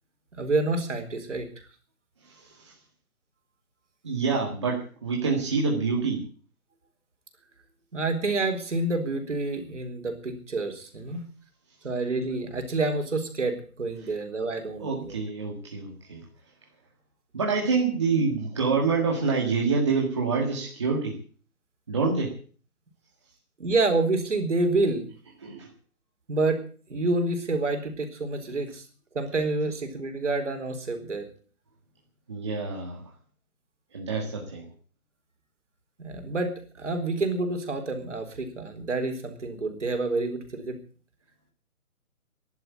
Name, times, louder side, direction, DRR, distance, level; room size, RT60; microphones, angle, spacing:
voice 1, 0.3-1.5 7.9-11.3 11.8-15.2 23.6-25.1 26.3-26.6 26.9-28.8 29.1-31.3 36.0-40.8, right 3 dB, 55° right, 6 dB, 4.1 m, -28 dB
voice 2, 2.2-2.7 4.0-6.2 14.8-16.2 17.3-21.2 21.9-22.3 25.4-25.7 32.3-33.0 33.9-34.7, right 4 dB, 20° right, -2 dB, 1.8 m, -27 dB
13.5 x 11.5 x 8.5 m, 0.42 s
hypercardioid pair, 180°, 44 cm